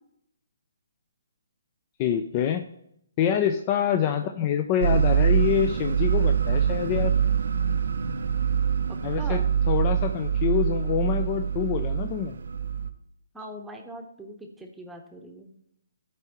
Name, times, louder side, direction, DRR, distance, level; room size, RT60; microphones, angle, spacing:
voice 1, 2.0-2.7 3.2-7.1 9.0-12.3, left 9 dB, 30° left, 6 dB, 0.4 m, -26 dB
sound 1, 4.8-12.9, right 7 dB, 65° right, 0.5 m, -24 dB
voice 2, 8.9-9.5 13.3-15.5, right 1 dB, 5° right, 1 dB, 0.9 m, -42 dB
12.5 x 4.5 x 3.0 m, 0.74 s
figure-of-eight pair, 140°, 0 cm